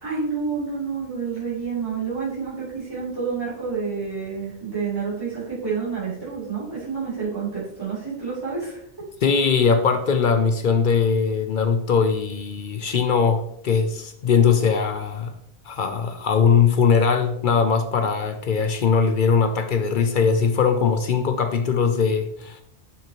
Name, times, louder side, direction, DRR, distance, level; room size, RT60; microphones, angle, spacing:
voice 1, 0.0-8.8, right 5 dB, 20° right, -11 dB, 3.2 m, -29 dB
voice 2, 9.2-15.3 15.7-22.6, left 6 dB, 55° left, 7 dB, 0.7 m, -20 dB
7.3 x 6.1 x 3.0 m, 0.74 s
omnidirectional pair, 1.1 m